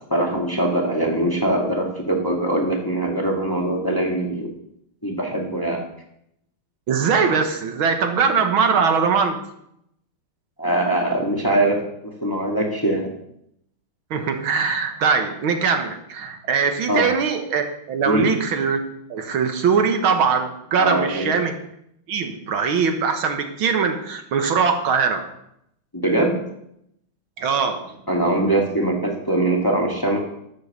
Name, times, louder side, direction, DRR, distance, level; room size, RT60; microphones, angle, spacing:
voice 1, 0.1-4.5 5.0-5.8 10.6-13.1 16.9-17.1 18.0-18.3 20.8-21.3 25.9-26.4 28.1-30.2, right 1 dB, 10° left, 0 dB, 1.8 m, -22 dB
voice 2, 6.9-9.4 14.1-18.8 19.1-21.5 22.1-25.2 27.4-28.0, right 5 dB, 75° right, 6 dB, 2.0 m, -21 dB
13.0 x 6.8 x 6.8 m, 0.77 s
omnidirectional pair, 2.3 m